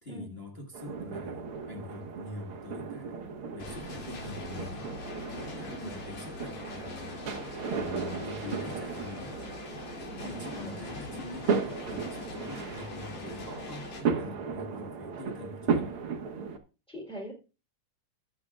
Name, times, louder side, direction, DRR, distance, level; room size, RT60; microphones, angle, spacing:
voice 1, 0.0-3.2 3.5-4.9 5.3-9.4 10.2-15.9, left 2 dB, 35° left, 1.0 m, -44 dB
sound 1, 0.7-16.6, right 5 dB, 55° right, 1.7 m, -36 dB
sound 2, 3.6-14.0, left 2 dB, 60° left, 3.9 m, -42 dB
voice 2, 10.1-10.8 16.9-17.3, right 1 dB, ahead, 2.6 m, -42 dB
20.5 x 7.7 x 2.4 m
omnidirectional pair, 3.7 m